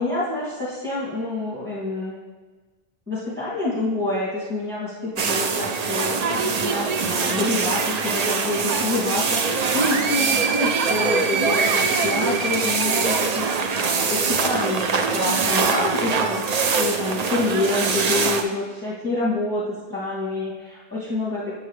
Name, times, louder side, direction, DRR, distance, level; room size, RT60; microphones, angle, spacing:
voice 1, 0.0-2.2 3.1-13.5 13.8-21.4, left 2 dB, 10° right, -8 dB, 2.3 m, -27 dB
sound 1, 5.2-18.4, right 5 dB, 50° right, 0.5 m, -23 dB
8.0 x 7.9 x 3.2 m, 1.3 s
omnidirectional pair, 1.1 m